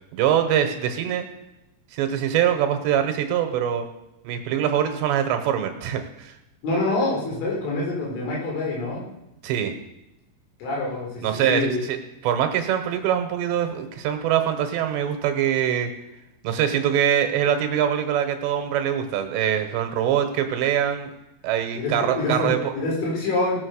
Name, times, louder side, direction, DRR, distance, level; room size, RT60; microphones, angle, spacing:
voice 1, 0.1-1.3 1.9-3.9 4.2-6.4 9.4-9.8 11.2-12.0 12.2-15.9 16.4-21.1 21.4-22.7, right 9 dB, 75° right, 6 dB, 3.0 m, -23 dB
voice 2, 6.6-9.0 10.6-11.8 21.7-23.6, left 2 dB, 80° left, -3 dB, 6.4 m, -26 dB
19.0 x 7.5 x 6.4 m, 0.91 s
omnidirectional pair, 5.5 m